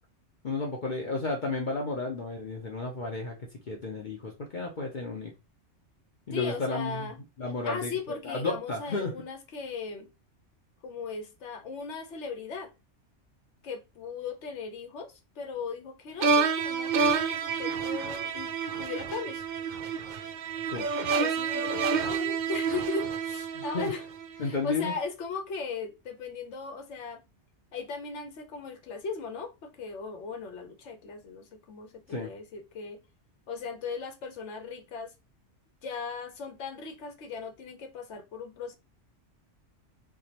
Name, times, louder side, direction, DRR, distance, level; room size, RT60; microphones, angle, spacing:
voice 1, 0.4-5.3 6.3-7.1 7.4-9.1 20.7-20.9 23.5-23.9 24.4-24.9 32.1-32.3, left 3 dB, 45° left, 0.8 m, -32 dB
voice 2, 6.3-7.2 7.6-10.1 10.8-12.7 13.6-18.5 18.8-19.4 21.1-24.0 24.3-27.2 27.7-33.0 33.5-35.1 35.8-38.8, left 5 dB, 70° left, 1.1 m, -38 dB
sound 1, 16.2-24.4, right 5 dB, 65° right, 0.5 m, -29 dB
4.7 x 2.3 x 2.8 m
omnidirectional pair, 1.2 m